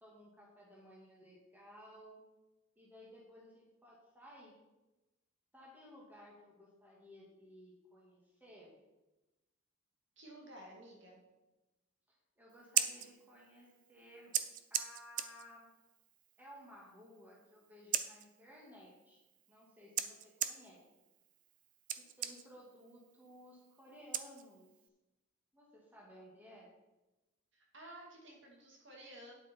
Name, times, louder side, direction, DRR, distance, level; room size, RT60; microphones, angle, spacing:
voice 1, 0.0-2.2 2.8-4.5 5.5-8.8 12.1-14.3 14.7-15.8 16.4-19.2 19.5-20.8 22.0-24.7 25.5-26.7, equal, 10° right, -4 dB, 2.1 m, -57 dB
voice 2, 10.2-11.2 27.5-29.3, right 1 dB, 60° right, -2 dB, 2.2 m, -53 dB
Scissors, 12.5-24.9, right 10 dB, 40° right, 0.5 m, -42 dB
9.4 x 8.1 x 4.5 m, 1.0 s
head